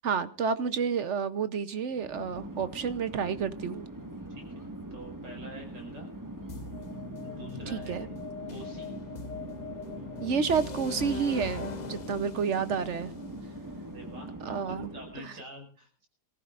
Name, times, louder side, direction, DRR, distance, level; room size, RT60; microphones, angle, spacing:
voice 1, 0.0-3.9 7.7-8.1 10.2-13.1 14.4-14.9 15.2-15.3, right 6 dB, 55° right, 0.9 m, -30 dB
Chatter / Fixed-wing aircraft airplane, 1.9-15.3, right 1 dB, 10° right, 1.5 m, -42 dB
voice 2, 4.9-6.1 7.2-8.2 8.5-9.0 13.9-16.1, equal, 90° right, 6.0 m, -47 dB
sound 1, 6.5-14.4, left 5 dB, 60° left, 0.4 m, -41 dB
25.5 x 14.5 x 2.5 m
omnidirectional pair, 1.8 m